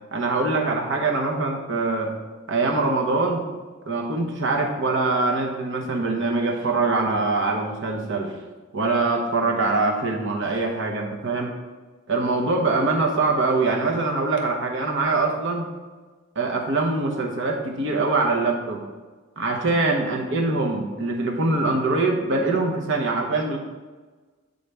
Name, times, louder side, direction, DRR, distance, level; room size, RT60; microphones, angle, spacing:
voice 1, 0.1-2.1 2.5-3.5 3.8-8.3 8.7-11.5 12.1-15.7 16.3-18.8 19.4-23.6, right 3 dB, 60° right, 1 dB, 0.9 m, -23 dB
8.3 x 4.0 x 3.3 m, 1.3 s
head